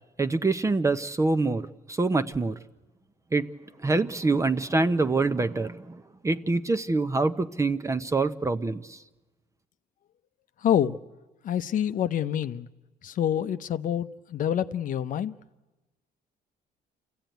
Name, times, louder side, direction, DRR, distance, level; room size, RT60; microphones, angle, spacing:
voice 1, 0.2-2.5 3.3-3.5 3.8-9.0, right 3 dB, 20° right, 0.8 m, -25 dB
voice 2, 10.6-11.0 11.4-12.7 13.0-15.3, left 10 dB, 55° left, 0.7 m, -27 dB
27.0 x 15.0 x 9.3 m
cardioid pair, 110°, 17 cm